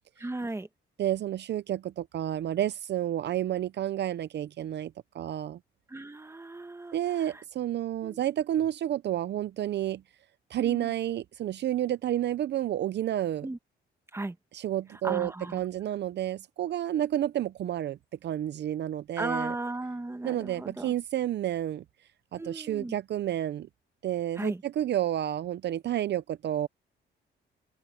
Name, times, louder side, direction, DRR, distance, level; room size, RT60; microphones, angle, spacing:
voice 1, 0.2-0.7 5.9-7.4 8.0-8.2 10.5-10.9 13.4-13.6 14.1-14.4 14.9-15.6 19.2-20.9 22.4-23.0 24.4-24.6, right 2 dB, 15° right, 1.6 m, -36 dB
voice 2, 1.0-5.6 6.9-10.0 10.5-13.5 14.5-19.5 20.2-21.8 22.3-23.7 24.0-26.7, right 12 dB, 60° right, 0.6 m, -30 dB
open air
cardioid pair, 90°, 20 cm